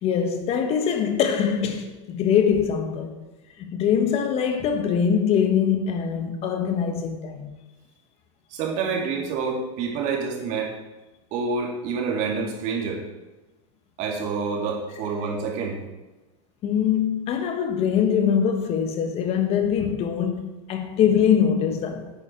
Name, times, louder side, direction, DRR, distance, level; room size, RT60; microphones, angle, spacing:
voice 1, 0.0-3.2 3.6-7.5 16.6-22.1, left 8 dB, 40° left, 1.3 m, -23 dB
voice 2, 8.5-10.7 11.3-13.0 14.0-15.8, right 5 dB, 50° right, 2.7 m, -27 dB
9.9 x 8.9 x 4.6 m
supercardioid pair, 120°, 16 cm